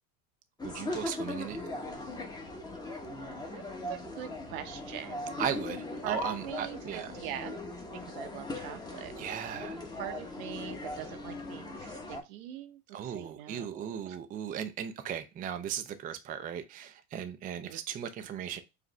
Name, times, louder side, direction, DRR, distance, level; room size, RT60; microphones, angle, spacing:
sound 1, 0.6-12.2, left 2 dB, 10° left, 0.9 m, -39 dB
voice 1, 0.6-1.6 5.4-7.1 9.2-9.8 12.9-18.6, right 9 dB, 20° right, 0.4 m, -37 dB
voice 2, 3.9-5.4 6.0-7.6 8.0-9.1 10.0-14.2 17.6-17.8, right 11 dB, 75° right, 0.9 m, -43 dB
4.9 x 2.5 x 3.1 m
supercardioid pair, 105°, 43 cm